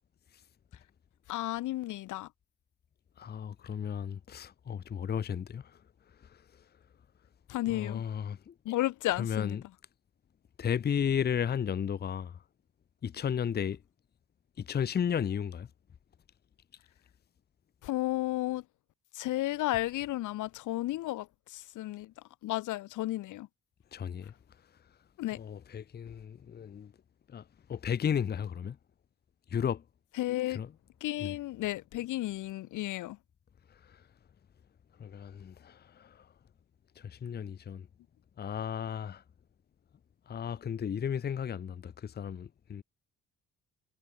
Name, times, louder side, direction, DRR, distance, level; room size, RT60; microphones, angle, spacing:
voice 1, 1.3-2.3 7.5-8.0 8.7-9.6 17.8-18.6 19.1-21.3 21.5-22.1 22.4-23.5 25.2-25.4 30.2-30.6 31.0-33.2, left 16 dB, 80° left, 0.9 m, -33 dB
voice 2, 3.2-5.6 7.7-8.5 9.2-9.6 10.6-12.4 13.0-13.8 14.6-15.7 23.9-24.3 25.4-26.9 27.3-27.4 27.7-28.8 29.5-29.8 30.5-30.7 31.2-31.3 35.0-36.2 37.0-37.9 38.4-39.2 40.3-42.8, left 8 dB, 35° left, 0.6 m, -34 dB
cardioid pair, 90°, 30 cm